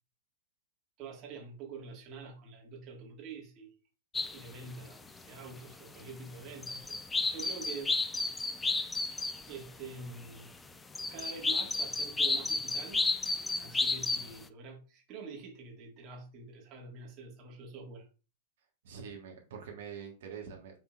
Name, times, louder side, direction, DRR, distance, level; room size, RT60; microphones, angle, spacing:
voice 1, 1.0-3.8 4.3-6.9 7.3-7.9 9.5-10.5 11.1-13.0 13.6-18.1, right 4 dB, 35° right, 0 dB, 1.8 m, -46 dB
sound 1, 4.1-4.5 5.5-5.6 6.0-6.3 6.6-9.7 10.2-10.3 10.9-14.4, left 3 dB, 10° left, 0.4 m, -32 dB
voice 2, 18.8-20.8, right 7 dB, 60° right, 1 dB, 1.4 m, -45 dB
5.9 x 3.7 x 2.4 m, 0.34 s
figure-of-eight pair, 100°, 0 cm